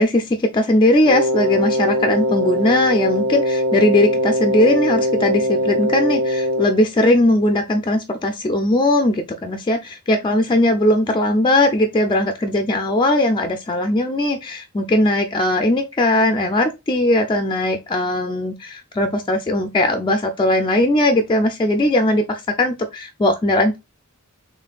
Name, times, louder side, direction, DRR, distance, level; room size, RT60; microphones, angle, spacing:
voice 1, 0.0-23.8, left 1 dB, 20° left, 0.4 m, -19 dB
Wind instrument woodwind instrument, 1.0-6.8, equal, 65° right, 0.9 m, -21 dB
4.2 x 3.2 x 2.2 m
head